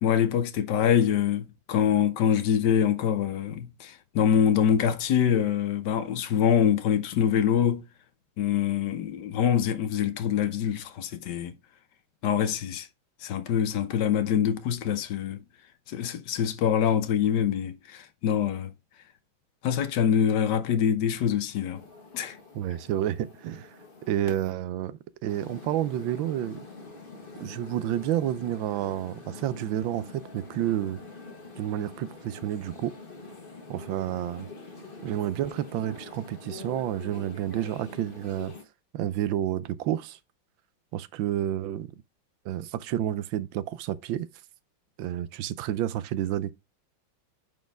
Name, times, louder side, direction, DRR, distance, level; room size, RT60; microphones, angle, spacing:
voice 1, 0.0-7.8 8.4-11.5 12.2-12.9 13.2-15.4 15.9-18.7 19.6-21.8 22.1-22.4, left 8 dB, 65° left, 1.2 m, -25 dB
sound 1, 21.7-24.5 25.3-38.6, left 3 dB, 30° left, 1.4 m, -45 dB
voice 2, 22.5-23.7 24.1-26.6 27.4-31.0 31.6-32.9 33.7-34.5 35.0-38.5 38.9-40.2 40.9-41.9 42.4-44.3 45.0-46.5, right 12 dB, 75° right, 1.3 m, -30 dB
9.2 x 4.3 x 3.4 m
omnidirectional pair, 2.2 m